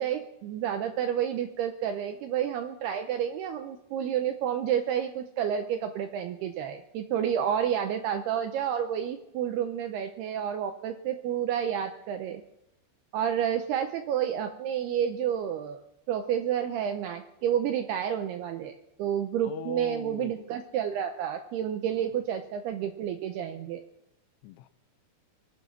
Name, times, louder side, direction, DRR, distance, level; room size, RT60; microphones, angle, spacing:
voice 1, 0.0-12.4 13.1-15.8 16.1-23.8, right 9 dB, 80° right, 6 dB, 2.4 m, -30 dB
voice 2, 19.4-20.5 22.0-22.1 24.4-24.7, left 12 dB, 85° left, 14 dB, 3.2 m, -41 dB
23.0 x 8.4 x 6.1 m, 0.81 s
omnidirectional pair, 5.5 m